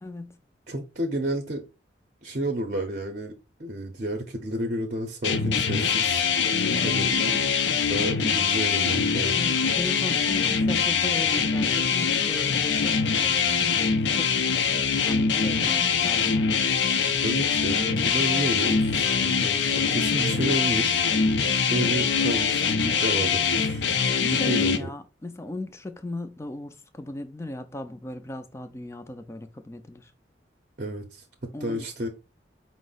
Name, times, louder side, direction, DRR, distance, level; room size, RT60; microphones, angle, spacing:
voice 1, 0.0-0.4 6.6-7.0 9.3-13.8 14.1-14.4 14.7-16.6 21.7-21.9 24.2-30.1 31.5-31.8, left 1 dB, 15° left, 0.4 m, -37 dB
voice 2, 0.7-1.6 2.2-3.3 3.6-6.2 6.8-7.4 7.9-9.4 17.2-21.0 21.7-23.9 24.5-24.9 30.8-31.2 31.6-32.1, right 1 dB, 45° right, 0.6 m, -31 dB
sound 1, 5.2-24.8, left 6 dB, 75° left, 0.5 m, -23 dB
5.1 x 2.0 x 3.8 m
head